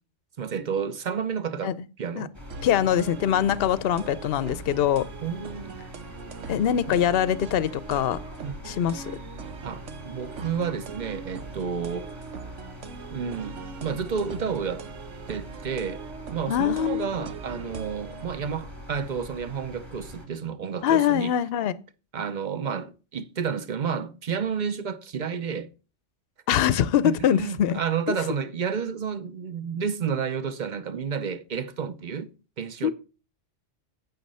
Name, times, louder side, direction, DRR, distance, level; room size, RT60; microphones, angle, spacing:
voice 1, 0.4-2.3 5.2-5.8 6.9-7.0 8.4-8.6 9.6-12.1 13.1-14.9 15.3-16.0 16.3-21.3 22.1-25.7 27.0-32.3 32.6-32.9, right 6 dB, 45° right, 0.8 m, -31 dB
sound 1, 2.3-20.3, equal, 15° right, 3.0 m, -43 dB
sound 2, 2.5-18.2, right 5 dB, 75° right, 1.2 m, -42 dB
voice 2, 2.6-5.1 6.5-8.2 8.6-9.0 16.5-17.3 20.8-21.8 26.5-27.8 28.1-28.2 32.8-32.9, left 10 dB, 60° left, 0.8 m, -23 dB
9.4 x 7.1 x 5.5 m
omnidirectional pair, 1.3 m